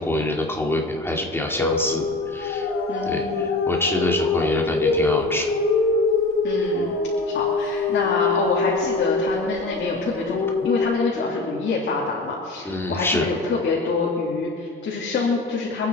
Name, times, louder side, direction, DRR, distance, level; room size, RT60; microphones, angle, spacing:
voice 1, 0.0-2.7 3.0-5.5 12.6-13.3, left 1 dB, 10° left, 0 dB, 2.6 m, -25 dB
sound 1, 1.6-10.8, left 3 dB, 80° left, 2.8 m, -24 dB
voice 2, 2.9-3.5 6.4-6.9 7.3-15.9, left 4 dB, 60° left, -4 dB, 2.9 m, -26 dB
25.5 x 9.3 x 4.7 m, 2.3 s
cardioid pair, 90°, 20 cm